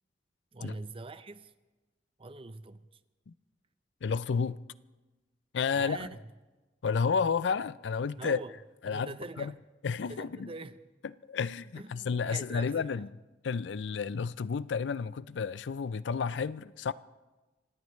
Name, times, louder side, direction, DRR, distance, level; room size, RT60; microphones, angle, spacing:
voice 1, 0.5-1.5 2.2-2.9 5.7-6.3 8.2-8.5 8.9-9.5 10.0-10.8 11.7-13.1, right 2 dB, 30° right, 0.7 m, -43 dB
voice 2, 4.0-4.6 5.5-6.1 6.8-8.4 8.8-9.1 9.4-9.5 9.8-10.5 11.3-13.1 13.4-16.9, left 5 dB, 90° left, 0.4 m, -31 dB
25.5 x 17.5 x 3.2 m
head